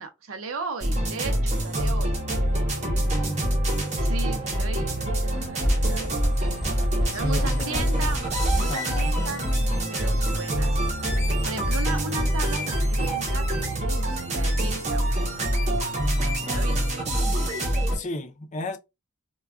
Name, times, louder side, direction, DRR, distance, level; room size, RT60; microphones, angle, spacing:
voice 1, 0.0-2.1 4.0-6.1 7.0-9.4 9.9-10.8 11.4-15.1 16.4-17.1, right 3 dB, 80° right, 0.6 m, -36 dB
sound 1, 0.8-18.0, equal, 30° right, 0.7 m, -25 dB
sound 2, 2.1-15.8 16.2-16.3, right 4 dB, 80° left, 0.8 m, -44 dB
voice 2, 2.8-3.5 7.1-7.9 8.7-9.2 17.9-18.8, left 2 dB, 35° left, 0.4 m, -35 dB
sound 3, 5.3-8.8 9.1-9.2, equal, ahead, 1.0 m, -30 dB
2.3 x 2.2 x 3.5 m
head